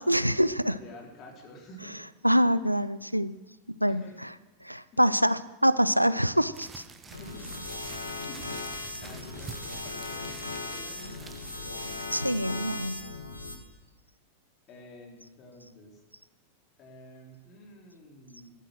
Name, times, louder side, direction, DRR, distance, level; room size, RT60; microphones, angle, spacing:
voice 1, 0.0-0.8 2.2-3.4 3.8-4.3 4.6-6.8 12.1-13.0, equal, 90° right, 16 dB, 0.5 m, -25 dB
voice 2, 0.7-2.0 2.7-2.8 3.9-4.2 4.9-5.1 7.1-7.7 8.3-8.6 9.0-12.6 14.7-16.0 16.8-18.6, left 1 dB, 35° left, -1 dB, 4.1 m, -49 dB
sound 1, 6.5-12.3, right 5 dB, 20° right, 1.1 m, -47 dB
sound 2, 7.1-13.6, left 3 dB, 80° left, 1.8 m, -38 dB
14.0 x 12.0 x 6.3 m, 1.2 s
figure-of-eight pair, 90°, 0 cm